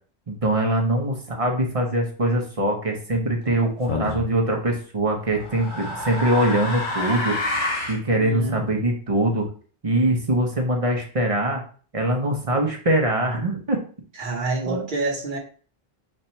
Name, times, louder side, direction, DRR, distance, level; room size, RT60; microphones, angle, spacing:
voice 1, 0.3-7.4 7.9-9.5 9.8-11.6 11.9-13.8 14.6-14.8, right 1 dB, 35° right, 1 dB, 0.9 m, -23 dB
sound 1, 3.9-4.3 5.3-8.0, left 2 dB, 55° left, 1.2 m, -28 dB
voice 2, 8.2-8.6 14.2-15.4, right 3 dB, 55° right, 1 dB, 1.2 m, -27 dB
4.2 x 2.6 x 4.4 m, 0.41 s
omnidirectional pair, 1.0 m